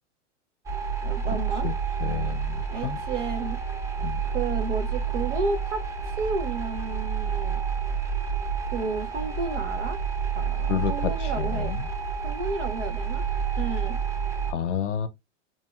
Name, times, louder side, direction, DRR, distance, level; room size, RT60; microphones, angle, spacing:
sound 1, 0.7-14.5, right 6 dB, 10° right, 0.4 m, -29 dB
voice 1, 1.0-1.7 2.7-3.6 4.3-5.8 6.2-7.6 8.7-10.0 10.3-11.7 12.2-13.2 13.6-14.0, right 3 dB, 85° right, 1.2 m, -32 dB
voice 2, 2.0-3.0 4.0-4.2 10.7-11.8 14.5-15.1, left 9 dB, 85° left, 0.7 m, -30 dB
7.3 x 2.8 x 2.3 m
hypercardioid pair, 110°, 35 cm